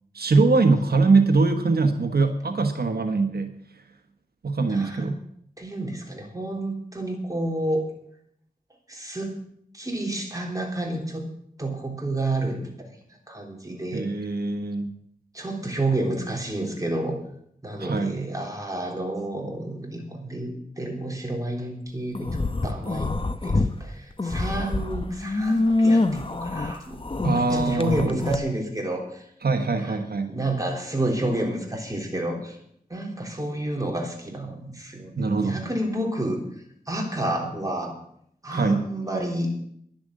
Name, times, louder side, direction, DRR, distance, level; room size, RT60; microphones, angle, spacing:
voice 1, 0.1-3.5 4.4-5.2 13.9-14.9 17.8-18.2 27.2-28.2 29.4-30.4 35.2-35.6 38.5-38.8, right 3 dB, 85° right, 6 dB, 1.2 m, -22 dB
voice 2, 4.7-5.2 5.6-7.9 8.9-9.3 9.7-11.3 11.6-12.9 13.3-14.3 15.3-17.2 17.6-23.1 23.4-29.2 29.7-30.0 30.3-32.6 32.9-36.4 36.9-38.0 38.4-39.5, right 1 dB, 20° right, 0 dB, 3.7 m, -30 dB
sound 1, 22.1-23.7 24.1-28.4, left 2 dB, 35° left, 1.0 m, -25 dB
11.0 x 10.5 x 7.6 m, 0.69 s
wide cardioid pair, 80°, 16 cm